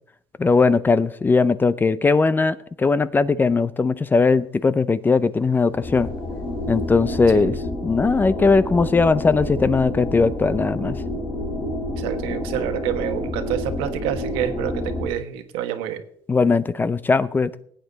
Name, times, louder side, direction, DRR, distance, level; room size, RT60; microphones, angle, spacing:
voice 1, 0.4-6.1 6.7-7.6 7.8-11.0 16.3-17.5, left 4 dB, 20° left, 0.6 m, -19 dB
sound 1, 5.7-15.1, left 1 dB, 90° left, 5.6 m, -29 dB
voice 2, 12.0-16.0, right 10 dB, 90° right, 1.4 m, -28 dB
17.5 x 8.8 x 4.1 m
cardioid pair, 95°, 9 cm